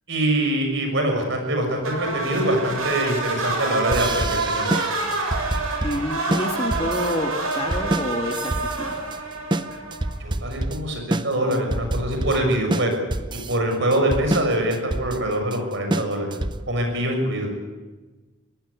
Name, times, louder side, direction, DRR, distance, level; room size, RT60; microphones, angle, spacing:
voice 1, 0.1-4.7 10.2-13.0 13.5-17.5, right 1 dB, 55° right, 3 dB, 6.6 m, -24 dB
sound 1, 1.8-10.3, right 3 dB, 85° right, 7.3 m, -27 dB
sound 2, 3.9-16.8, right 1 dB, 20° right, 0.7 m, -27 dB
voice 2, 5.8-8.5 8.8-9.0, left 1 dB, 25° left, 4 dB, 1.9 m, -28 dB
24.5 x 18.0 x 8.5 m, 1.2 s
head